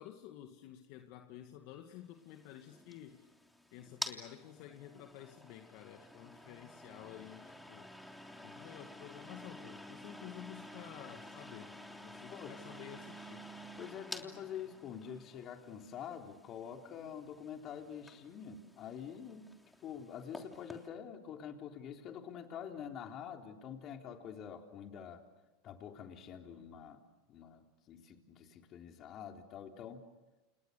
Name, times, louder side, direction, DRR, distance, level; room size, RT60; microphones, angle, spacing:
voice 1, 0.0-3.3 3.7-7.9 8.4-13.5, left 12 dB, 60° left, 5 dB, 2.1 m, -51 dB
sound 1, 2.2-20.9, left 1 dB, 5° left, 3.2 m, -50 dB
voice 2, 13.8-19.5 19.8-25.2 25.6-27.0 27.3-30.0, left 8 dB, 40° left, 3 dB, 3.8 m, -46 dB
30.0 x 28.5 x 6.9 m, 1.1 s
supercardioid pair, 115°, 0 cm